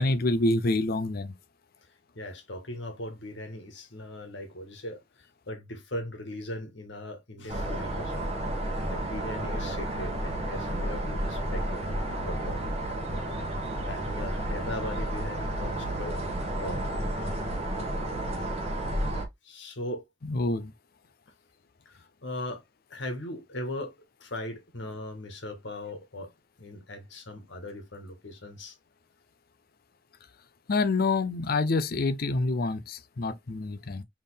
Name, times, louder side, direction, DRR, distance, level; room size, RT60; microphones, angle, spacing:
voice 1, 0.0-1.3 20.3-20.7 30.7-34.0, left 2 dB, 50° left, 0.5 m, -27 dB
voice 2, 2.1-8.3 8.9-11.8 12.2-12.7 13.9-16.2 16.6-16.8 19.4-20.0 21.8-22.6 22.9-23.9 24.2-26.3 26.6-28.7, left 1 dB, 65° left, 1.6 m, -39 dB
sound 1, 7.5-19.2, right 1 dB, 30° right, 1.4 m, -31 dB
4.2 x 3.6 x 3.4 m
head